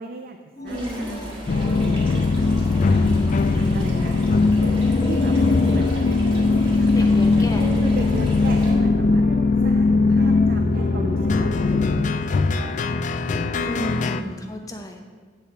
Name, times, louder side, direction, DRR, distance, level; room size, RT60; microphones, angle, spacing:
voice 1, 0.0-0.4 0.6-2.5 3.1-5.4 5.7-6.1 6.7-6.9 7.5-9.2 9.6-12.7 13.3-13.7, right 3 dB, 50° right, 5 dB, 0.4 m, -36 dB
voice 2, 0.6-1.3 6.9-7.7 13.6-15.0, equal, 20° left, 3 dB, 0.7 m, -32 dB
sound 1, 0.6-12.7, equal, 70° right, 1.5 m, -41 dB
sound 2, 0.7-8.7, equal, 30° right, 1.7 m, -35 dB
sound 3, 1.5-14.2, left 3 dB, 40° left, 0.3 m, -20 dB
8.4 x 4.1 x 7.0 m, 1.5 s
head